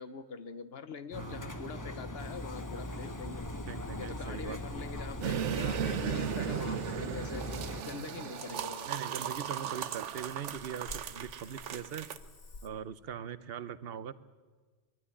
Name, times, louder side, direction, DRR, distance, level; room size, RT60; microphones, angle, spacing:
voice 1, 0.0-3.5 4.0-7.5 7.8-9.0, left 5 dB, 60° left, 12 dB, 1.2 m, -44 dB
Engine, 1.1-7.8, left 1 dB, 20° left, 0.9 m, -40 dB
voice 2, 1.2-1.5 3.7-4.6 8.9-12.1 12.6-14.1, right 8 dB, 60° right, 15 dB, 1.0 m, -41 dB
Cricket / Frog, 2.2-12.7, left 3 dB, 85° left, 1.8 m, -52 dB
sound 1, 5.2-12.2, right 9 dB, 85° right, 1.1 m, -36 dB
22.5 x 12.5 x 9.8 m, 1.4 s
omnidirectional pair, 1.2 m